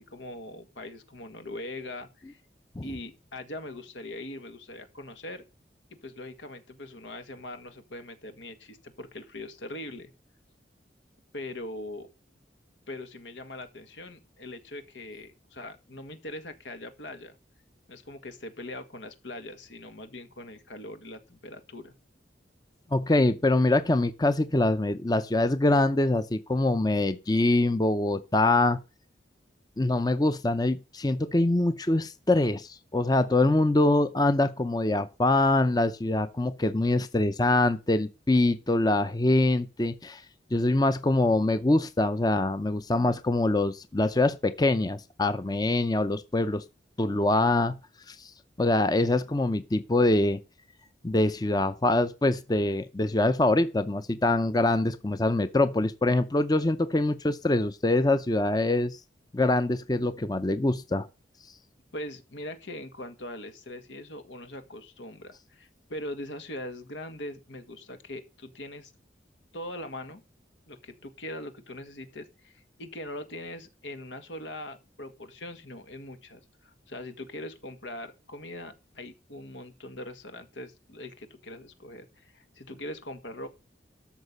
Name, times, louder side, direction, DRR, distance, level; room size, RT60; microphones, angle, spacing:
voice 1, 0.0-2.4 2.8-5.4 6.0-10.1 11.3-12.1 12.9-17.4 17.9-21.9 61.9-68.9 69.5-70.2 70.7-83.5, left 1 dB, 90° left, 1.8 m, -41 dB
voice 2, 22.9-28.8 29.8-40.2 40.5-46.6 47.0-47.7 48.1-48.3 48.6-50.4 51.0-59.0 59.3-61.1, left 2 dB, 20° left, 0.6 m, -24 dB
13.0 x 6.5 x 5.4 m
head